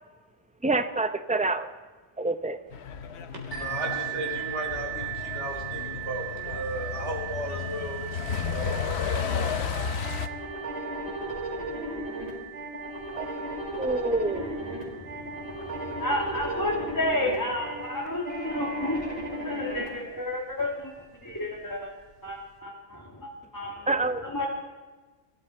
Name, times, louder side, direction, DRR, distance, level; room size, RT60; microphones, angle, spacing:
voice 1, 0.6-1.7 2.2-2.6 13.1-13.3 13.8-14.5 23.9-24.2, right 2 dB, 10° right, 9 dB, 0.5 m, -27 dB
Truck, 2.7-10.3, left 6 dB, 70° left, 1.0 m, -33 dB
sound 1, 3.5-19.1 19.8-19.9 20.5-20.6, right 14 dB, 85° left, 5.7 m, -40 dB
voice 2, 3.5-8.7, right 1 dB, 80° right, -2 dB, 4.7 m, -35 dB
sound 2, 10.0-19.9, right 1 dB, 60° right, 5.8 m, -35 dB
voice 3, 14.8-19.0 19.4-20.9 21.2-21.9 22.2-23.9 24.2-24.4, left 1 dB, 15° left, -4 dB, 2.2 m, -31 dB
23.0 x 13.5 x 4.4 m, 1.3 s
omnidirectional pair, 1.2 m